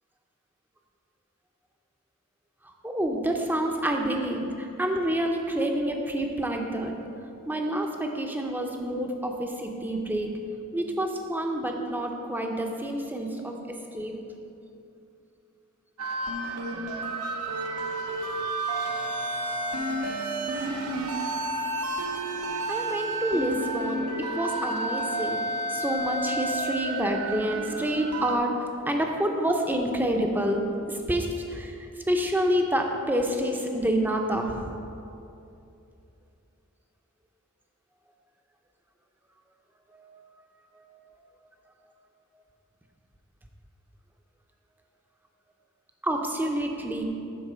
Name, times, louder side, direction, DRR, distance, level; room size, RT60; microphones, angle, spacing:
voice 1, 2.8-7.0 7.5-10.4 10.7-13.6 13.9-14.1 22.7-24.1 24.3-25.4 25.7-34.7 40.0-40.1 46.0-47.0, right 1 dB, 10° right, 3 dB, 0.5 m, -28 dB
sound 1, 16.0-28.4, right 2 dB, 80° right, 0.7 m, -31 dB
7.9 x 4.3 x 5.6 m, 2.6 s
head